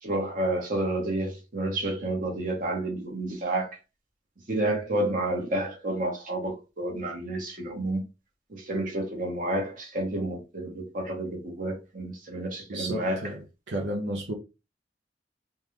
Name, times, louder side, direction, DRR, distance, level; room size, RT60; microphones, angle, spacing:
voice 1, 0.0-3.8 4.5-8.0 8.5-13.3, right 1 dB, 50° right, 1.3 m, -30 dB
voice 2, 12.7-13.4 13.7-14.3, right 1 dB, 85° right, 0.8 m, -32 dB
3.8 x 2.4 x 3.2 m
head